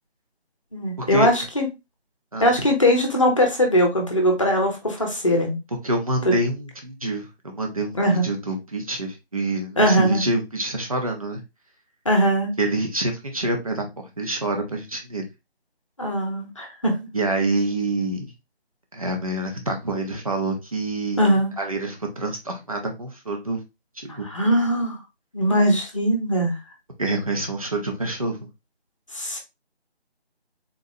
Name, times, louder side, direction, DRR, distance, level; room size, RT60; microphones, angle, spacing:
voice 1, 0.7-1.7 2.4-5.6 6.2-6.3 7.9-8.3 9.8-10.2 12.0-12.5 16.0-16.9 21.2-21.5 24.1-25.0 25.3-26.6 29.1-29.4, equal, 30° left, 2 dB, 0.8 m, -20 dB
voice 2, 5.8-11.4 12.6-15.3 17.1-18.2 18.9-23.6 24.0-24.3 27.0-28.5, right 2 dB, 35° right, 3 dB, 0.7 m, -27 dB
3.8 x 3.0 x 2.7 m, 0.24 s
figure-of-eight pair, 160°, 32 cm